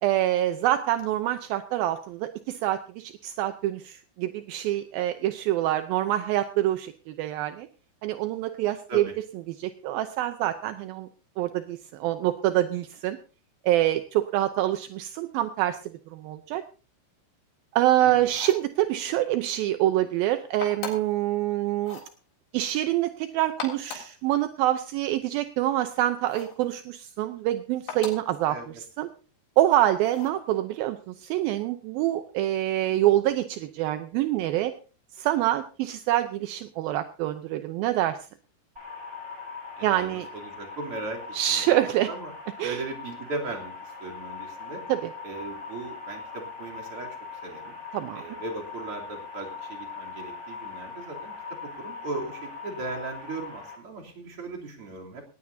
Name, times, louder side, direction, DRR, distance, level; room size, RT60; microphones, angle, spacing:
voice 1, 0.0-7.7 8.0-9.0 9.6-11.1 11.4-13.2 13.6-15.8 16.1-16.6 17.7-22.0 22.5-29.1 29.6-34.7 35.2-38.2 39.8-40.3 41.3-42.1 42.6-42.8 44.9-45.0 47.9-48.2, right 13 dB, 80° right, 9 dB, 2.2 m, -26 dB
voice 2, 18.0-18.4 28.5-28.8 39.8-41.6 42.1-42.3 42.6-44.8 45.2-47.7 48.1-51.3 51.6-55.2, right 3 dB, 35° right, -1 dB, 3.6 m, -38 dB
sound 1, 18.2-18.7 20.6-21.2 21.8-22.1 23.4-24.2 26.3-26.6 27.9-28.3 30.0-30.4, left 6 dB, 90° left, 6.0 m, -39 dB
sound 2, 38.8-53.8, left 5 dB, 10° right, 3.6 m, -41 dB
18.5 x 18.0 x 2.7 m, 0.36 s
omnidirectional pair, 5.0 m